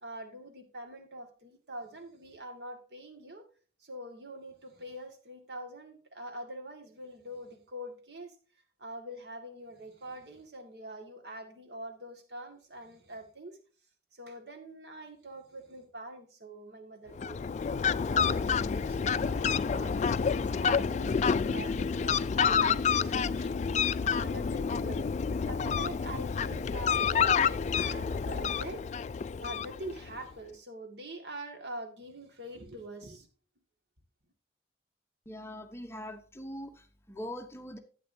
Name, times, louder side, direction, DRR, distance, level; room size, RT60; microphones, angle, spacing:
voice 1, 0.0-3.5 3.8-8.4 8.8-13.6 14.1-23.6 24.0-25.1 25.4-28.9 29.4-33.3, right 1 dB, 70° right, 6 dB, 1.9 m, -44 dB
Fowl, 17.1-30.1, left 6 dB, 40° left, 0.3 m, -29 dB
voice 2, 35.3-37.8, equal, 15° left, 7 dB, 0.8 m, -42 dB
11.5 x 8.7 x 2.7 m, 0.39 s
head